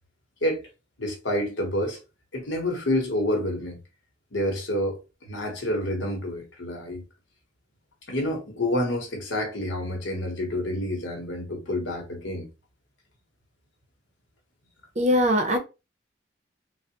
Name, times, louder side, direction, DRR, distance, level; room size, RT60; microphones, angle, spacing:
voice 1, 1.0-2.0 2.3-3.8 4.3-5.0 5.3-7.0 8.1-12.5, left 1 dB, 80° left, 0.9 m, -28 dB
voice 2, 15.0-15.6, equal, 35° right, 0.6 m, -21 dB
3.4 x 2.0 x 2.8 m
head